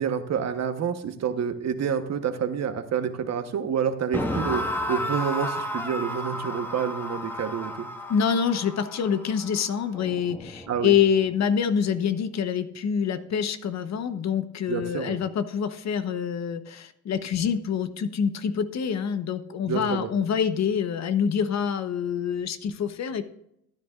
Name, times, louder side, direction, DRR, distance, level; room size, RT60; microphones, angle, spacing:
voice 1, 0.0-7.9 10.7-10.9 14.7-15.2 19.7-20.1, right 7 dB, 60° right, 9 dB, 1.1 m, -28 dB
sound 1, 4.1-11.2, left 1 dB, 5° left, 1.6 m, -33 dB
voice 2, 8.1-23.2, left 7 dB, 60° left, 11 dB, 1.0 m, -26 dB
14.5 x 9.6 x 2.5 m, 0.77 s
cardioid pair, 90°, 30 cm